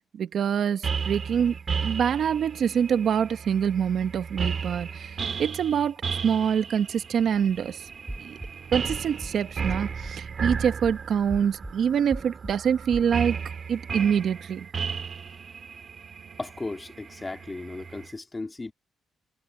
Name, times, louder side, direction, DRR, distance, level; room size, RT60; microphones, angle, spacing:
voice 1, 0.0-1.5 1.8-7.9 8.2-8.4 8.7-13.4 13.7-14.7, right 8 dB, 60° right, 1.2 m, -25 dB
sound 1, 0.8-18.1, right 6 dB, 40° right, 3.3 m, -34 dB
sound 2, 8.1-8.5 8.9-9.3 9.7-10.1 10.5-10.9 11.3-11.7 12.1-12.5 12.9-13.1, right 1 dB, 5° right, 3.7 m, -36 dB
voice 2, 16.4-18.7, left 3 dB, 20° left, 2.3 m, -36 dB
cardioid pair, 115°, 0 cm